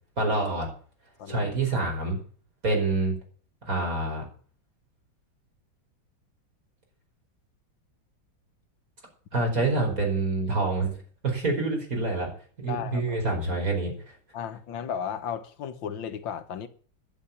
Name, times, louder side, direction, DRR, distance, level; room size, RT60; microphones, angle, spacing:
voice 1, 0.2-0.7 1.3-2.2 2.6-3.2 3.6-4.3 9.3-11.0 11.2-12.3 12.6-13.9, right 2 dB, 40° right, 5.4 m, -26 dB
voice 2, 1.2-1.5 12.6-13.2 14.3-16.7, left 8 dB, 70° left, 1.7 m, -34 dB
11.0 x 10.0 x 7.0 m
omnidirectional pair, 2.3 m